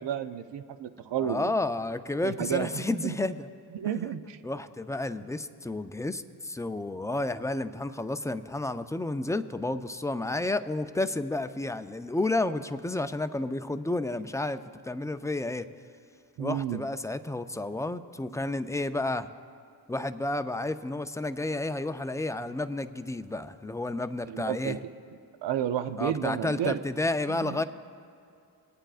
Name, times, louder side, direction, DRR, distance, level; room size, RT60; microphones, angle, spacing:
voice 1, 0.0-1.5 2.2-3.2 3.7-4.4 16.4-16.8 24.3-24.8 25.4-26.8 27.3-27.6, right 10 dB, 80° right, 11 dB, 0.6 m, -31 dB
voice 2, 1.2-3.5 4.4-15.7 16.4-19.3 19.9-24.8 26.0-27.6, left 2 dB, 10° left, 10 dB, 0.3 m, -31 dB
23.5 x 8.9 x 2.4 m, 2.5 s
cardioid pair, 60°, 42 cm